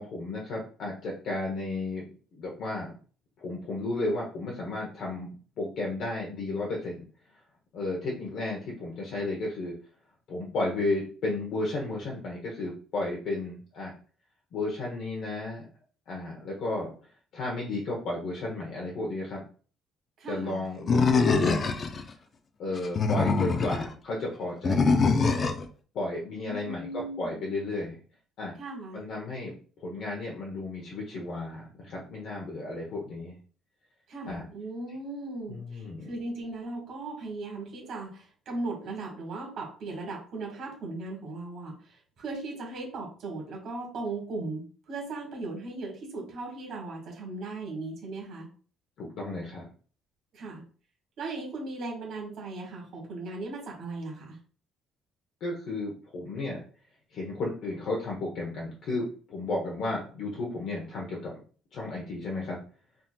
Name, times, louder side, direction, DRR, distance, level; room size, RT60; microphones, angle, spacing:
voice 1, 0.0-2.9 3.4-7.0 7.7-9.7 10.3-13.9 14.5-15.6 16.1-16.9 17.3-19.4 20.3-21.7 22.6-24.9 25.9-28.0 28.4-28.5 28.9-33.4 34.3-34.4 35.5-36.1 49.0-49.7 55.4-56.6 57.1-61.4 61.7-62.6, left 2 dB, 55° left, -2 dB, 0.7 m, -33 dB
voice 2, 20.2-20.6 26.4-27.4 28.6-29.0 34.1-48.5 50.3-50.6 51.2-54.4, right 2 dB, 50° right, -1 dB, 1.4 m, -37 dB
Animal, 20.9-22.0 22.8-23.9 24.6-25.7, left 4 dB, 25° left, 0.3 m, -23 dB
3.5 x 2.8 x 2.3 m, 0.41 s
cardioid pair, 175°, 0 cm